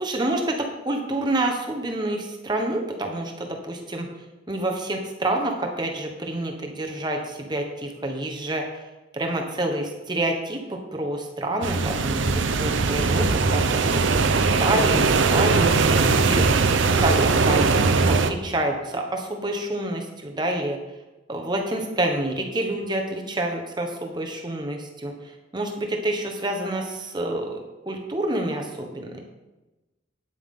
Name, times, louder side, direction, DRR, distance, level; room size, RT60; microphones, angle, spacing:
voice 1, 0.0-4.1 4.5-8.8 9.1-14.0 14.6-16.5 16.8-20.8 21.3-29.2, right 1 dB, 25° right, 2 dB, 1.2 m, -28 dB
sound 1, 11.6-18.3, right 4 dB, 90° right, 0.7 m, -20 dB
9.4 x 9.1 x 3.8 m, 1.1 s
head